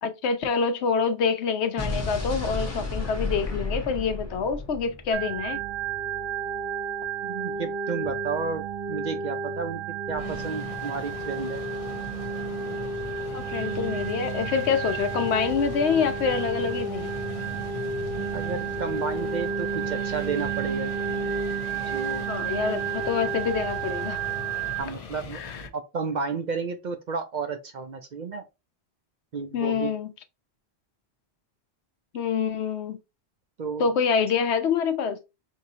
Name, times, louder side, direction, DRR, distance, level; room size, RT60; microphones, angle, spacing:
voice 1, 0.0-5.6 13.3-17.1 22.3-24.2 25.3-25.6 29.5-30.1 32.1-33.0 33.8-35.2, left 6 dB, 80° left, 0.9 m, -26 dB
Explosion, 1.8-5.9, left 2 dB, 15° left, 0.9 m, -32 dB
Organ, 5.1-24.8, right 6 dB, 80° right, 1.1 m, -31 dB
voice 2, 7.2-9.8 10.1-11.6 18.3-20.9 21.9-22.2 24.8-25.4 25.7-28.4 29.3-29.9 33.6-33.9, right 5 dB, 55° right, 0.5 m, -32 dB
sound 1, 10.1-25.7, left 5 dB, 45° left, 0.5 m, -40 dB
4.6 x 2.7 x 2.7 m
omnidirectional pair, 1.1 m